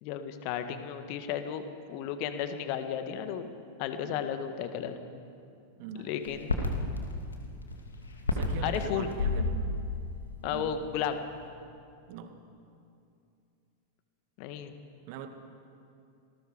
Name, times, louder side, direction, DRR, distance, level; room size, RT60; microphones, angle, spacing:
voice 1, 0.0-3.5 3.8-4.9 5.9-6.5 8.6-9.1 10.4-11.2 14.4-14.7, left 9 dB, 45° left, 8 dB, 1.8 m, -34 dB
voice 2, 5.8-6.1 8.3-9.5 10.5-10.7 12.1-12.3 15.1-15.3, right 8 dB, 45° right, 7 dB, 2.0 m, -41 dB
sound 1, 6.2-11.0 11.4-11.5, left 2 dB, 75° left, 2.6 m, -32 dB
27.0 x 19.5 x 5.2 m, 2.5 s
figure-of-eight pair, 90°, 0 cm